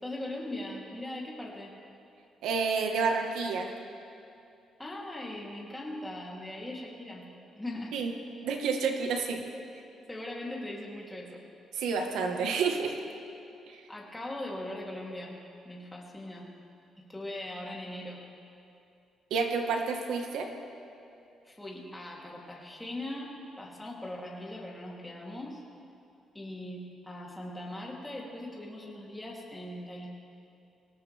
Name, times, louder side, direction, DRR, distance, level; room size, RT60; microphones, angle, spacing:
voice 1, 0.0-1.7 4.8-7.3 7.5-8.0 10.1-11.4 13.9-15.3 15.6-16.5 17.0-18.2 21.4-25.6 26.3-30.1, left 1 dB, 10° left, -3 dB, 3.2 m, -40 dB
voice 2, 2.4-3.7 7.9-8.1 8.4-9.4 11.7-12.9 13.7-13.8 19.3-20.5, right 5 dB, 85° right, 3 dB, 1.6 m, -29 dB
22.5 x 18.0 x 3.6 m, 2.6 s
cardioid pair, 90°, 0 cm